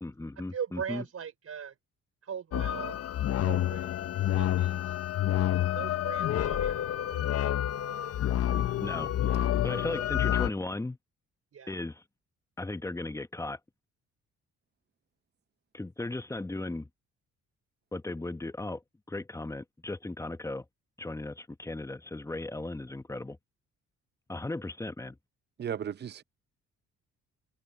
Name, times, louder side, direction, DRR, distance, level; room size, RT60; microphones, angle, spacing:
voice 1, 0.0-1.0 8.8-9.1 9.6-11.0 11.7-12.0 12.6-13.6 15.7-16.9 17.9-18.8 19.1-20.6 21.0-23.4 24.3-25.2, left 2 dB, 10° left, 1.0 m, -36 dB
voice 2, 0.5-1.8 2.2-3.0 3.4-5.0 5.7-7.5 11.5-11.8, right 7 dB, 50° right, 4.5 m, -40 dB
sound 1, 2.5-10.5, left 11 dB, 50° left, 0.7 m, -29 dB
voice 3, 25.6-26.2, right 9 dB, 35° right, 0.6 m, -35 dB
cardioid pair, 90°, 30 cm